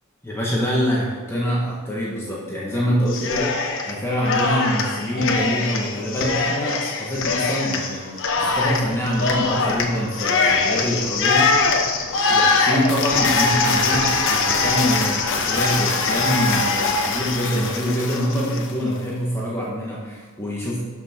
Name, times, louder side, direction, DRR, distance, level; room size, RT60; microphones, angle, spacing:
voice 1, 0.2-11.9 12.3-20.8, equal, 10° left, -6 dB, 1.6 m, -25 dB
Cheering, 3.1-3.9 4.2-18.7, left 4 dB, 60° left, 1.1 m, -22 dB
12.5 x 5.9 x 4.5 m, 1.5 s
head